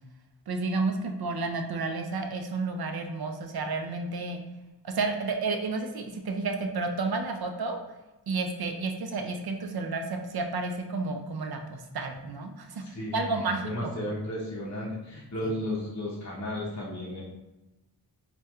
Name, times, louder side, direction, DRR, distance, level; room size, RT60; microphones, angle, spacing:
voice 1, 0.5-4.4 4.8-7.8 8.3-12.8 13.1-13.9 15.4-15.5, right 3 dB, 60° right, 4 dB, 0.5 m, -31 dB
voice 2, 12.8-13.4 13.6-17.2, left 1 dB, 40° left, -5 dB, 0.6 m, -34 dB
4.1 x 2.2 x 2.3 m, 1.0 s
wide cardioid pair, 90°, 43 cm